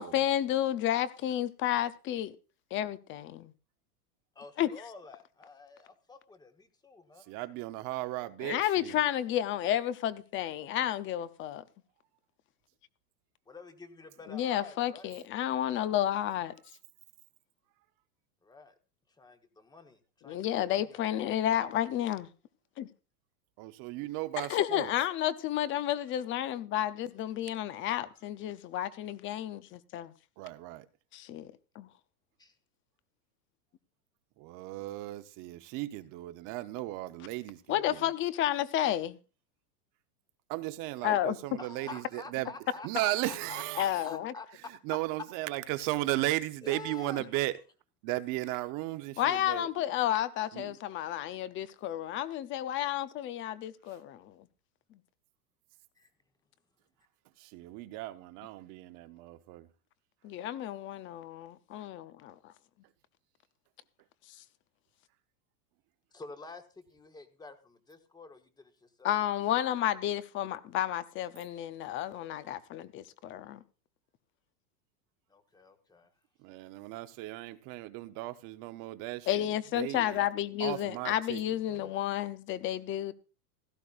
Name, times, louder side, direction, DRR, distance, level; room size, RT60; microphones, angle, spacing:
voice 1, 0.0-2.4 2.7-3.5 4.6-4.7 8.4-11.6 14.3-16.5 20.3-22.3 22.8-22.9 24.4-30.1 31.1-31.5 31.8-31.9 37.7-39.2 41.0-41.4 43.8-44.3 49.2-54.4 60.2-62.5 69.0-73.6 79.3-83.1, left 12 dB, 25° left, 0.6 m, -31 dB
voice 2, 4.3-7.3 13.5-15.1 18.4-18.7 19.2-21.1 32.4-32.6 41.6-44.5 45.5-45.9 46.6-47.2 56.0-56.1 66.1-69.2 75.3-76.1, left 3 dB, 10° left, 1.1 m, -49 dB
voice 3, 7.3-9.0 23.6-24.9 30.4-30.9 34.4-37.6 37.9-38.0 40.5-42.5 42.8-43.9 44.9-47.5 48.0-49.7 50.5-50.7 57.4-59.7 76.4-79.5 79.7-80.0 80.6-81.4 81.8-81.9, right 17 dB, 40° right, 0.9 m, -35 dB
16.0 x 14.0 x 2.5 m
supercardioid pair, 140°, 47 cm